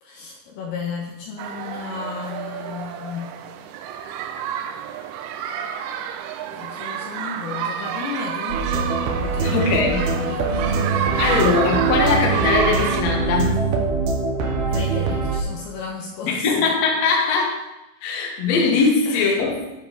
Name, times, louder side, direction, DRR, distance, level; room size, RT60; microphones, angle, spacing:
voice 1, 0.0-3.3 6.5-10.8 11.1-11.6 14.7-16.7 19.1-19.4, left 5 dB, 75° left, 0 dB, 2.5 m, -34 dB
sound 1, 1.4-13.0, right 9 dB, 85° right, 2.2 m, -29 dB
sound 2, 8.5-15.4, right 4 dB, 70° right, 2.7 m, -23 dB
voice 2, 9.4-10.1 11.2-13.6 16.3-17.6 18.0-19.6, left 4 dB, 60° left, 0 dB, 1.9 m, -20 dB
10.5 x 4.7 x 5.2 m, 0.96 s
omnidirectional pair, 5.1 m